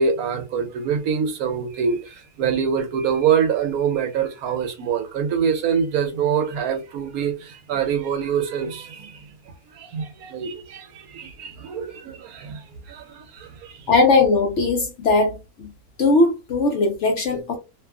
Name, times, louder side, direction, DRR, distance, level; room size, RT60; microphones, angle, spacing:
voice 1, 0.0-13.9, right 7 dB, 75° right, 1.1 m, -25 dB
voice 2, 13.9-15.7 16.0-17.6, left 3 dB, 60° left, 0.8 m, -19 dB
2.7 x 2.4 x 2.2 m
omnidirectional pair, 1.6 m